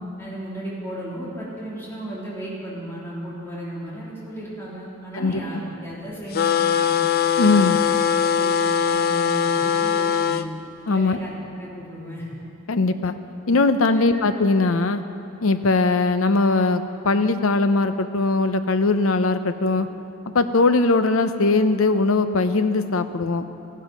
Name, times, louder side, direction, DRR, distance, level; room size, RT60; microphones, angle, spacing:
voice 1, 0.2-6.9 7.5-7.9 8.2-10.5 10.9-11.3 11.6-12.2 13.8-14.2, right 1 dB, 10° left, -8 dB, 3.3 m, -35 dB
sound 1, 6.3-10.5, left 7 dB, 45° left, 0.4 m, -21 dB
voice 2, 7.4-7.8 10.9-11.2 12.7-13.1 13.5-15.0 15.4-19.9 20.3-23.5, left 3 dB, 80° left, 10 dB, 0.7 m, -20 dB
15.0 x 11.5 x 5.2 m, 2.7 s
head